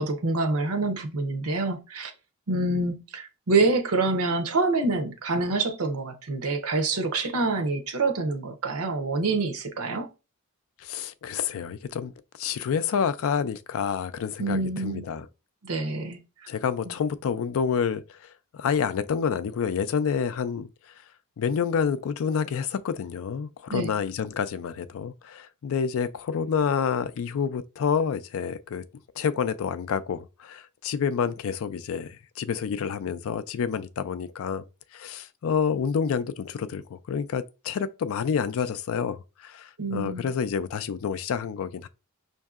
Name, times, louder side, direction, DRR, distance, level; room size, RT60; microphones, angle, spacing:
voice 1, 0.0-2.1 2.5-10.1 14.4-15.1 15.6-16.2 16.8-16.9 23.7-23.9 39.8-40.3, right 3 dB, 70° right, 0.7 m, -26 dB
voice 2, 10.8-12.1 12.4-15.3 16.5-20.7 21.4-28.8 29.2-34.6 34.9-41.9, left 6 dB, 65° left, 0.4 m, -28 dB
5.4 x 2.6 x 2.4 m
head